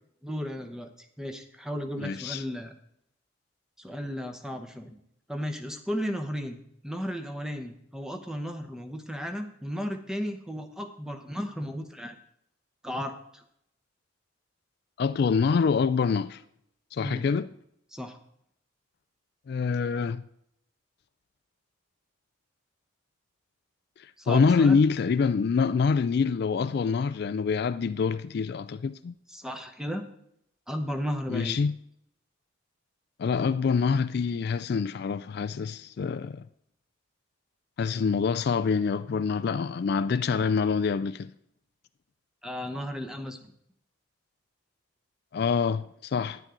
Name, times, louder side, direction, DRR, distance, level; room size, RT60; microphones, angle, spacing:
voice 1, 0.2-2.7 3.8-5.0 5.3-12.2 12.8-13.4 17.0-17.3 17.9-18.2 24.2-24.8 29.3-30.0 30.7-31.6 42.4-43.5, equal, 5° right, 0.9 m, -34 dB
voice 2, 2.0-2.4 15.0-16.4 16.9-17.5 19.5-20.2 24.0-29.1 31.3-31.8 33.2-36.4 37.8-41.3 45.3-46.4, left 5 dB, 50° left, 0.3 m, -26 dB
10.5 x 9.9 x 3.8 m
head